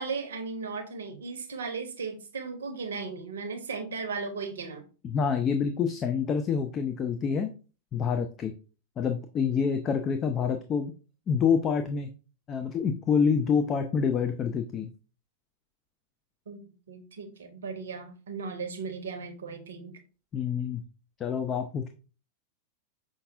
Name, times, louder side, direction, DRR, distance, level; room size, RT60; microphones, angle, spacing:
voice 1, 0.0-4.8 16.5-16.6 16.9-20.0, right 4 dB, 65° right, 7 dB, 0.6 m, -36 dB
voice 2, 5.0-7.5 7.9-8.5 9.0-10.9 11.3-12.1 12.5-14.9 20.3-20.8 21.2-21.9, left 6 dB, 25° left, 6 dB, 0.3 m, -27 dB
5.2 x 2.5 x 2.5 m, 0.35 s
figure-of-eight pair, 90°, 0 cm